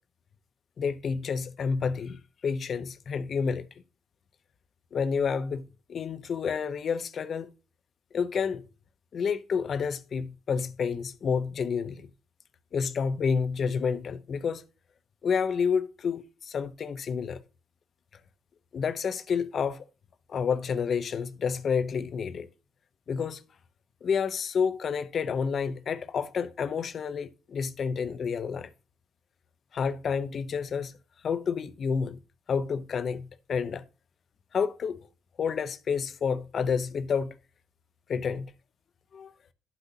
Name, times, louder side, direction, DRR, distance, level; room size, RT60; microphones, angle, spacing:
voice 1, 0.8-3.7 4.9-5.6 5.9-7.5 8.1-8.6 9.1-12.1 12.7-14.6 15.2-17.4 18.7-19.8 20.3-22.5 23.1-23.4 24.0-28.7 29.7-30.9 31.2-32.2 32.5-33.8 34.5-35.0 35.4-37.4 38.1-38.5 39.1-39.3, left 6 dB, 55° left, 0.7 m, -29 dB
11.0 x 8.1 x 2.8 m
cardioid pair, 90°, 0 cm